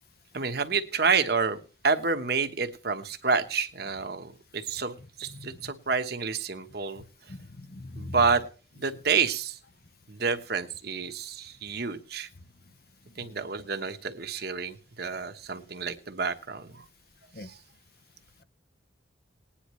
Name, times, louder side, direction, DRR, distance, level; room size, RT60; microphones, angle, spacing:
voice 1, 0.3-1.6 1.8-7.0 7.9-8.4 8.8-9.6 10.1-12.3 13.2-16.8 17.4-17.6, right 5 dB, 55° right, 8 dB, 1.1 m, -29 dB
voice 2, 5.3-5.7 7.3-8.2 13.2-13.3 17.3-17.5, left 2 dB, 50° left, 13 dB, 0.8 m, -42 dB
19.5 x 10.0 x 3.1 m, 0.37 s
head